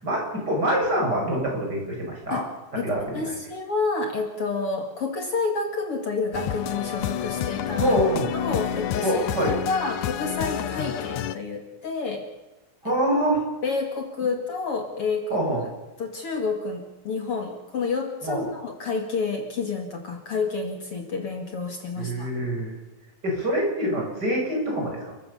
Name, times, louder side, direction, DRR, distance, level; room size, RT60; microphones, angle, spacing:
voice 1, 0.0-2.4 2.8-3.3 7.7-8.3 9.0-9.5 12.8-13.4 15.3-15.6 18.2-18.5 22.0-22.7 23.2-25.1, equal, 30° right, -1 dB, 6.9 m, -25 dB
voice 2, 2.8-7.9 8.3-12.2 12.8-12.9 13.6-15.4 16.0-22.3, left 4 dB, 50° left, 3 dB, 2.9 m, -29 dB
sound 1, 6.3-11.3, left 10 dB, 80° left, 2.4 m, -29 dB
29.5 x 14.5 x 7.1 m, 1.1 s
omnidirectional pair, 3.5 m